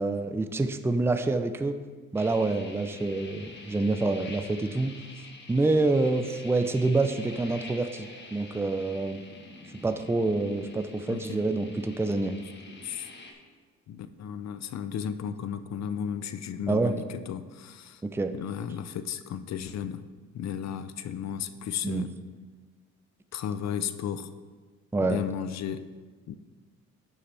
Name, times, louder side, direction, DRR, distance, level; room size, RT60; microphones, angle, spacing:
voice 1, 0.0-1.8 2.1-5.0 5.5-9.2 9.8-12.4 16.7-16.9 18.0-18.4 21.8-22.1 24.9-25.2, right 2 dB, 10° right, 8 dB, 0.5 m, -27 dB
sound 1, 2.2-13.3, left 3 dB, 35° left, 1.4 m, -47 dB
voice 2, 11.1-11.4 12.8-13.1 13.9-18.0 18.3-20.0 20.3-22.1 23.3-24.3 25.0-25.9 26.3-26.4, left 8 dB, 60° left, 11 dB, 0.6 m, -34 dB
11.0 x 7.2 x 3.4 m, 1.4 s
cardioid pair, 90°, 30 cm